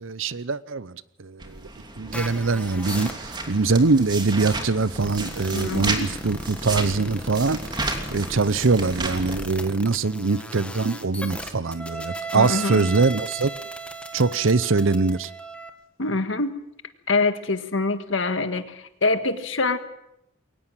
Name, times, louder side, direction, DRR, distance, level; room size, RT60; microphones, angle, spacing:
voice 1, 0.0-1.7 2.0-7.6 8.1-13.5 14.1-15.3, right 4 dB, 90° right, 0.8 m, -23 dB
sound 1, 1.4-9.5, right 2 dB, 25° right, 2.8 m, -33 dB
sound 2, 2.1-15.7, right 1 dB, 5° left, 1.9 m, -37 dB
voice 2, 5.5-6.1 12.3-12.8 16.0-16.6 17.1-19.8, left 3 dB, 75° left, 1.8 m, -25 dB
22.5 x 19.0 x 7.5 m
head